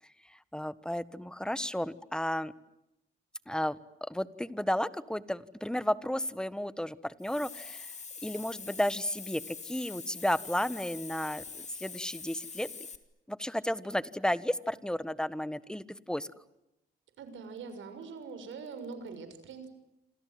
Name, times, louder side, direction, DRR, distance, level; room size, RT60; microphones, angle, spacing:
voice 1, 0.3-2.5 3.5-7.9 8.2-12.7 13.3-16.3, left 1 dB, 5° left, 15 dB, 1.4 m, -33 dB
Hiss, 7.2-13.0, left 5 dB, 35° left, 2.7 m, -44 dB
voice 2, 17.2-19.7, right 5 dB, 75° right, 9 dB, 6.6 m, -43 dB
27.5 x 27.5 x 7.8 m, 0.90 s
cardioid pair, 90°, 20 cm